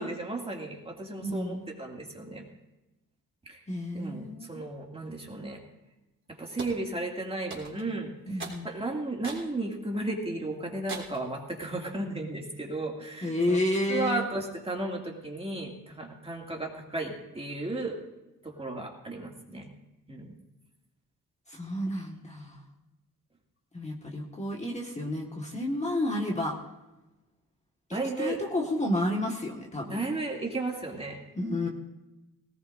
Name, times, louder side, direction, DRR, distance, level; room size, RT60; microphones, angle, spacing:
voice 1, 0.0-2.4 3.5-3.6 3.9-5.6 6.3-8.1 8.6-13.6 13.9-18.0 18.4-19.7 20.1-20.3 27.9-28.4 29.9-31.2, right 2 dB, 15° right, 0 dB, 2.4 m, -34 dB
voice 2, 1.2-1.7 3.7-4.6 8.3-8.7 13.2-14.2 21.5-22.6 23.7-26.6 28.2-30.0 31.4-31.7, left 1 dB, 20° left, -1 dB, 1.7 m, -30 dB
sound 1, 6.6-6.8 7.5-7.9 8.4-8.6 9.2-9.5 10.0-10.1 10.9-11.3, right 4 dB, 35° right, 3.5 m, -39 dB
19.0 x 17.5 x 2.6 m, 1.0 s
cardioid pair, 115°, 35 cm